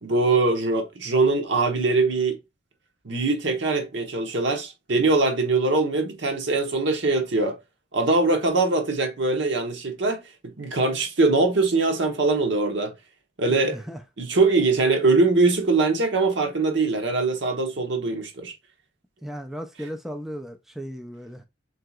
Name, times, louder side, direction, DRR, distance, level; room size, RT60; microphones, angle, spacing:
voice 1, 0.0-2.4 3.0-7.6 7.9-12.9 13.4-13.8 14.2-18.5, right 3 dB, 75° right, 1.1 m, -22 dB
voice 2, 13.5-14.0 19.2-21.4, equal, ahead, 0.4 m, -36 dB
7.6 x 2.8 x 2.4 m
head